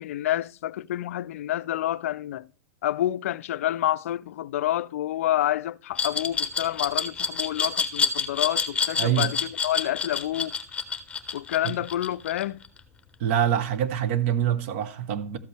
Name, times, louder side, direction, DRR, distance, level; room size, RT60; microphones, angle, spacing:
voice 1, 0.0-2.5 2.8-10.5 11.3-12.6, left 13 dB, 65° left, 0.4 m, -28 dB
Glass, 6.0-12.8, left 5 dB, 15° left, 1.1 m, -27 dB
voice 2, 9.0-9.3 11.6-11.7 13.2-15.4, right 10 dB, 55° right, 1.1 m, -25 dB
13.0 x 7.8 x 3.3 m
hypercardioid pair, 110°, 8 cm